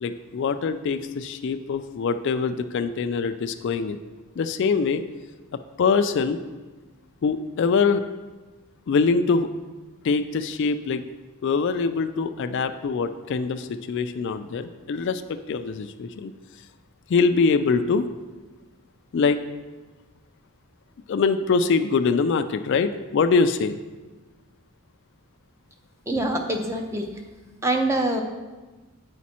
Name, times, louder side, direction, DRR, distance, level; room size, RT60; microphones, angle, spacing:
voice 1, 0.0-4.0 4.4-5.0 5.8-6.4 7.2-8.0 8.9-9.5 10.0-11.0 11.4-15.2 15.5-16.3 17.1-18.1 19.1-19.4 21.1-23.7, left 4 dB, 55° left, 9 dB, 0.3 m, -23 dB
voice 2, 26.1-27.1 27.6-28.2, right 1 dB, 15° right, 3 dB, 0.5 m, -24 dB
7.3 x 5.1 x 4.2 m, 1.2 s
head